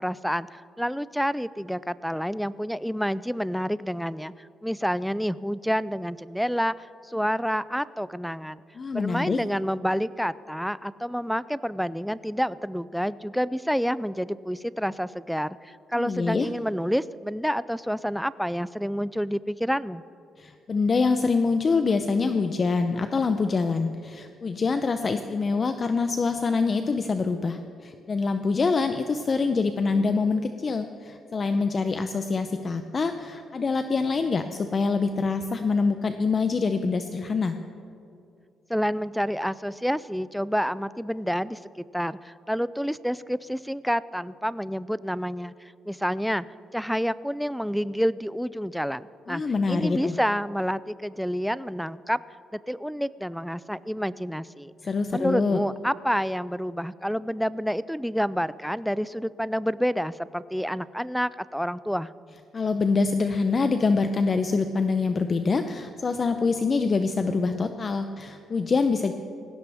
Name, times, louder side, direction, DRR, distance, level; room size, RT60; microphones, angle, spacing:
voice 1, 0.0-4.3 4.6-8.6 8.9-20.0 38.7-41.6 41.9-46.4 46.7-49.4 49.7-52.2 52.5-54.7 55.1-62.1, equal, ahead, 18 dB, 0.3 m, -28 dB
voice 2, 8.8-9.4 16.0-16.5 20.4-37.6 49.3-50.2 54.8-55.6 62.5-69.1, left 4 dB, 40° left, 8 dB, 0.6 m, -25 dB
18.5 x 16.0 x 3.5 m, 2.5 s
cardioid pair, 90°, 0 cm